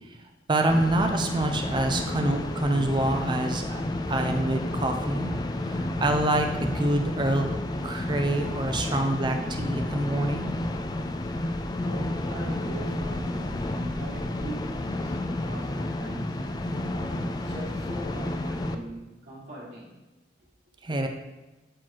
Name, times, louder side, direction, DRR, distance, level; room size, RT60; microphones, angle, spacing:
voice 1, 0.5-3.8 4.1-5.3 5.6-7.5 7.8-10.5 20.8-21.1, right 1 dB, 25° right, 5 dB, 0.6 m, -26 dB
sound 1, 0.7-18.8, left 1 dB, 25° left, 0.4 m, -31 dB
voice 2, 11.8-20.0, equal, 45° right, -10 dB, 1.7 m, -41 dB
7.7 x 4.5 x 4.5 m, 1.1 s
head